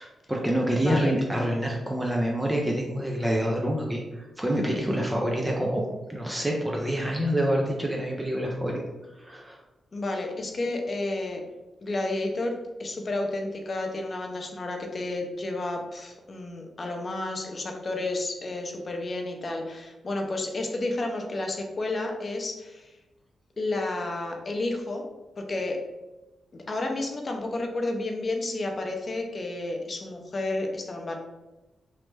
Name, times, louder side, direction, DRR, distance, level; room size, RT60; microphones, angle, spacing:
voice 1, 0.0-5.8 6.1-8.8 9.2-9.6, equal, 15° right, -1 dB, 0.5 m, -27 dB
voice 2, 0.7-1.1 9.9-11.4 11.8-22.9 23.6-25.0 25.4-25.8 26.5-31.2, left 2 dB, 45° left, 2 dB, 0.6 m, -31 dB
3.1 x 2.1 x 3.2 m, 1.1 s
cardioid pair, 65°, 0 cm